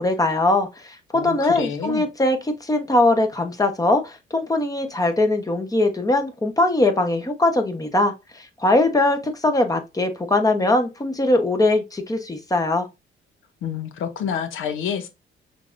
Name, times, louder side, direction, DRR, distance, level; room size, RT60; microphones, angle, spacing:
voice 1, 0.0-12.9, left 2 dB, 15° left, 1.0 m, -21 dB
voice 2, 1.1-2.0 13.6-15.1, left 7 dB, 85° left, 0.9 m, -28 dB
5.8 x 3.4 x 2.6 m
cardioid pair, 90°, 20 cm